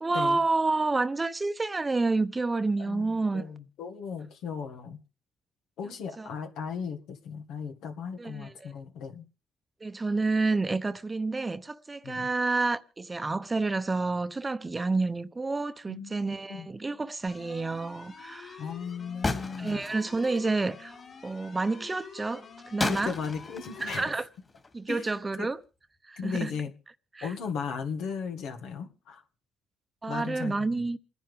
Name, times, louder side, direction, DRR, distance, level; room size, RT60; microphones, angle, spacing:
voice 1, 0.0-3.5 6.2-6.3 8.2-8.7 9.8-18.6 19.6-23.1 23.8-24.3 24.7-25.6 26.1-26.5 27.1-27.3 30.0-31.0, right 3 dB, 20° right, 0.8 m, -29 dB
voice 2, 2.8-5.0 5.8-9.3 12.0-12.3 15.9-16.7 18.6-19.8 22.9-24.2 24.9-25.1 25.4-25.5 26.2-26.7 27.2-29.2 30.1-30.9, left 6 dB, 85° left, 1.8 m, -36 dB
sound 1, 17.3-24.0, left 6 dB, 60° left, 3.9 m, -48 dB
sound 2, 19.2-20.5 22.8-24.9, left 3 dB, 30° left, 2.6 m, -34 dB
28.5 x 10.5 x 3.4 m
cardioid pair, 90°, 0 cm